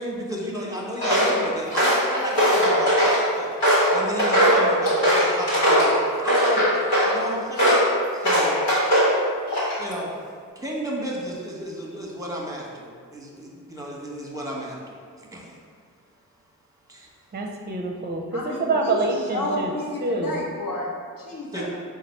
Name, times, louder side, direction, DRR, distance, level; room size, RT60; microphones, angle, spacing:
voice 1, 0.0-3.5 3.9-7.8 8.1-8.6 9.8-10.1 10.6-15.5 16.9-17.1 21.5-21.7, equal, 10° right, -2 dB, 0.9 m, -32 dB
Walk footsteps, 1.0-1.3 1.7-3.2 3.6-5.9 6.3-7.1 7.6-7.9 8.2-9.1 9.5-9.9, equal, 80° left, 1.4 m, -19 dB
voice 2, 17.3-19.7 20.0-20.4, right 3 dB, 25° right, 2 dB, 0.6 m, -26 dB
voice 3, 18.3-21.7, left 1 dB, 60° left, -4 dB, 1.0 m, -31 dB
4.0 x 2.4 x 4.4 m, 2.1 s
cardioid pair, 40°, 39 cm